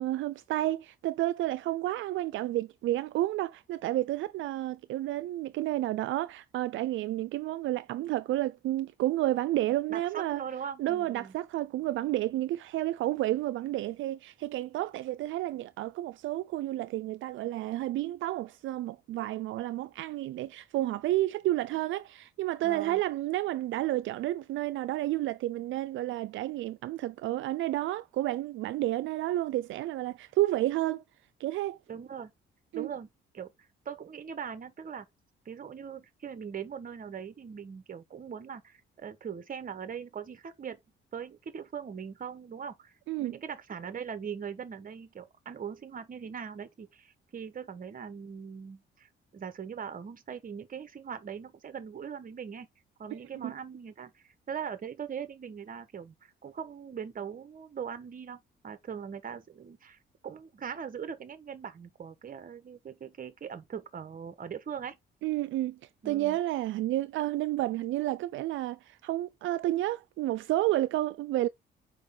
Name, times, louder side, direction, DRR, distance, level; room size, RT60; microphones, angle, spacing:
voice 1, 0.0-10.4 10.8-31.0 31.4-31.8 32.7-32.9 43.1-43.4 53.1-53.5 65.2-65.8 66.1-71.5, right 15 dB, 75° right, 0.4 m, -31 dB
voice 2, 9.9-11.3 22.6-23.0 31.9-32.3 32.7-33.1 33.3-33.5 33.8-35.1 35.4-40.8 41.1-42.9 43.2-52.7 53.0-65.0 66.0-66.4, right 7 dB, 45° right, 1.3 m, -41 dB
6.4 x 4.9 x 3.8 m
cardioid pair, 90°, 20 cm